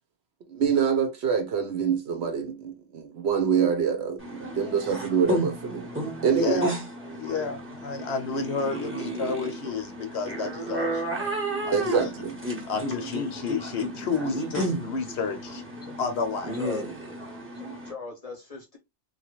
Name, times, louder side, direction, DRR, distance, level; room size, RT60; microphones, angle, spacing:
voice 1, 0.5-5.9 6.2-6.7 11.7-12.4, right 7 dB, 65° right, 0.9 m, -25 dB
sound 1, 4.2-17.9, right 1 dB, 15° right, 0.7 m, -33 dB
voice 2, 6.3-6.7 7.1-11.4 11.6-12.0 12.7-15.6 16.0-16.6, left 4 dB, 65° left, 0.8 m, -31 dB
voice 3, 17.5-18.8, left 5 dB, 35° left, 0.7 m, -39 dB
2.9 x 2.3 x 2.9 m
omnidirectional pair, 1.3 m